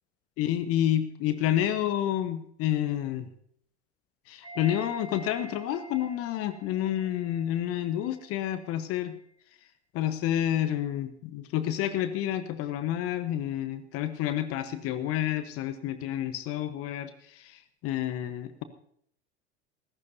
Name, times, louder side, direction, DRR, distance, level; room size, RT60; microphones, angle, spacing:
voice 1, 0.4-3.3 4.3-9.2 9.9-18.6, left 11 dB, 40° left, 11 dB, 1.1 m, -29 dB
sound 1, 4.4-8.3 8.6-8.7, right 1 dB, 15° right, 4.3 m, -46 dB
27.0 x 15.0 x 2.7 m, 0.66 s
figure-of-eight pair, 75°, 34 cm